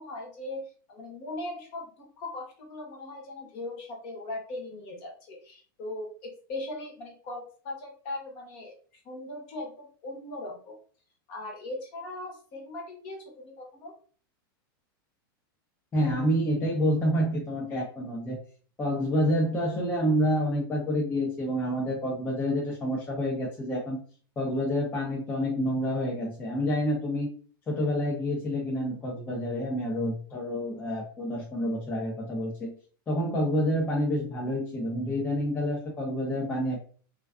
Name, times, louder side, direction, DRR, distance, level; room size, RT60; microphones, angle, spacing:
voice 1, 0.0-8.7 9.0-10.8 11.3-13.9, left 2 dB, 45° left, 0 dB, 0.9 m, -39 dB
voice 2, 15.9-18.4 18.8-24.0 24.4-27.3 27.7-32.8 33.1-36.8, equal, 15° left, -3 dB, 0.5 m, -28 dB
2.3 x 2.3 x 2.3 m, 0.42 s
supercardioid pair, 145°, 12 cm